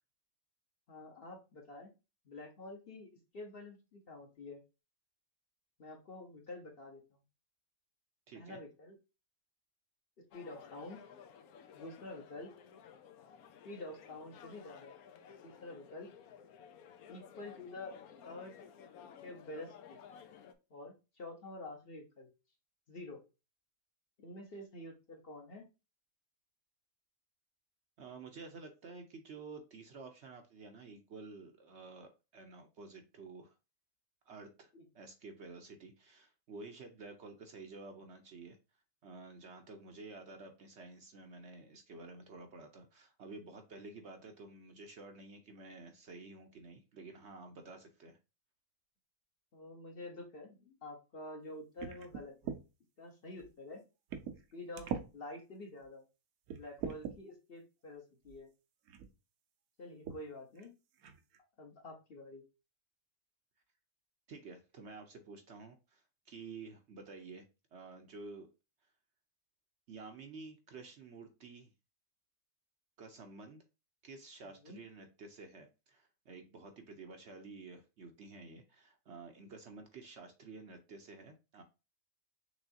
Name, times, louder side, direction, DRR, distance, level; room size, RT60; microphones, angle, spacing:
voice 1, 0.9-1.9 2.2-4.6 5.8-7.2 8.3-9.0 10.2-11.0 11.7-12.5 13.6-14.9 15.4-16.1 17.1-18.6 19.2-20.0 20.7-22.3 22.9-23.2 24.2-25.7 34.7-34.9 49.5-52.5 53.0-53.8 54.5-56.0 56.5-58.5 59.8-60.7 61.6-62.4 74.4-74.8, left 2 dB, 45° left, 1 dB, 1.1 m, -48 dB
voice 2, 8.3-8.6 28.0-33.5 34.3-38.6 39.0-48.2 64.3-67.4 67.7-68.5 69.9-71.7 73.0-73.6 74.0-81.6, right 3 dB, 60° right, 4 dB, 0.9 m, -51 dB
sound 1, 10.3-20.5, left 7 dB, 80° left, 1.1 m, -55 dB
sound 2, 51.8-52.6 53.4-53.5 54.1-54.4 54.7-55.1 55.8-55.9 56.5-57.2 58.3-58.4 58.9-59.1 60.0-60.2 60.6-60.7 61.0-61.4, right 7 dB, 80° right, 1.2 m, -41 dB
6.1 x 3.2 x 2.6 m, 0.29 s
omnidirectional pair, 1.5 m